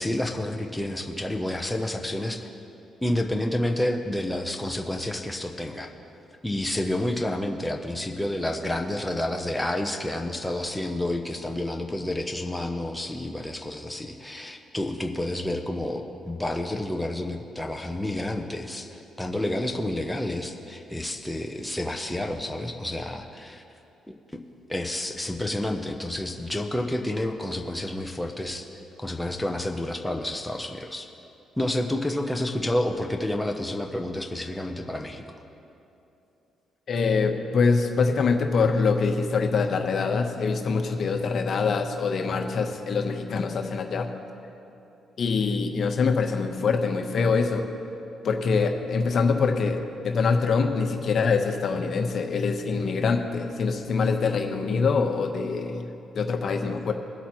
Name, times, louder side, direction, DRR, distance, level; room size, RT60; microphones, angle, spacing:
voice 1, 0.0-2.5 3.0-5.9 6.4-23.6 24.1-24.2 24.7-28.7 29.0-31.1 31.6-35.2, left 1 dB, 5° left, 2 dB, 0.9 m, -29 dB
voice 2, 36.9-44.1 45.2-47.6 48.2-56.9, left 4 dB, 55° left, 4 dB, 1.1 m, -24 dB
22.5 x 8.0 x 3.2 m, 2.8 s
cardioid pair, 90°, 0 cm